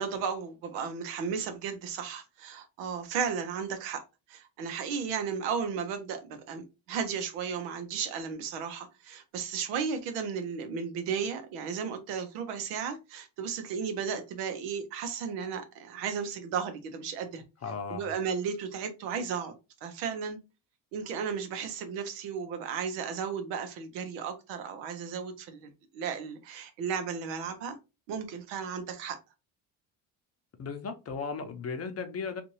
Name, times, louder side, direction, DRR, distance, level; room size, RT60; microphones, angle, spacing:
voice 1, 0.0-4.0 4.3-17.4 17.9-19.5 19.8-20.4 20.9-27.8 28.1-29.2, right 6 dB, 85° right, 0.7 m, -34 dB
voice 2, 17.6-18.1 30.6-32.4, left 5 dB, 40° left, 0.8 m, -36 dB
2.7 x 2.5 x 3.0 m
supercardioid pair, 75°, 40 cm